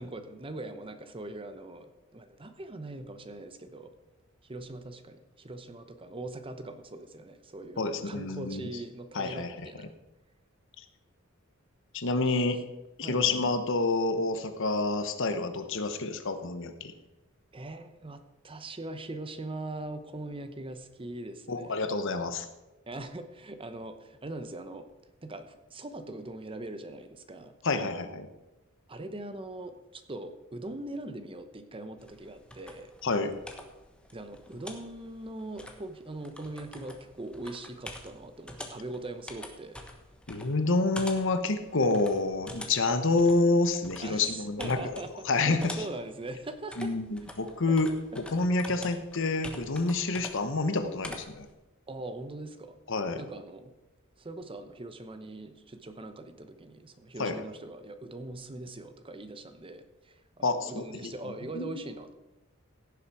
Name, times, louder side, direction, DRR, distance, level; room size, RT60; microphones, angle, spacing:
voice 1, 0.0-3.9 4.4-9.9 12.3-12.5 13.0-13.4 17.5-21.9 22.9-24.9 25.2-27.5 28.9-32.9 34.1-39.8 44.0-46.9 47.7-47.8 48.1-48.2 51.9-52.8 53.2-53.7 54.2-62.1, right 2 dB, 25° right, 9 dB, 0.9 m, -41 dB
voice 2, 7.8-8.6 9.1-9.7 11.9-12.6 13.0-16.9 21.5-22.5 27.6-28.3 33.0-33.3 40.3-45.0 45.3-45.7 46.8-51.5 52.9-53.2 57.2-57.3 60.4-61.1 61.5-61.8, left 3 dB, 65° left, 8 dB, 1.0 m, -28 dB
sound 1, 32.0-51.5, left 1 dB, 5° left, 1.2 m, -47 dB
16.5 x 7.1 x 4.8 m, 1.0 s
head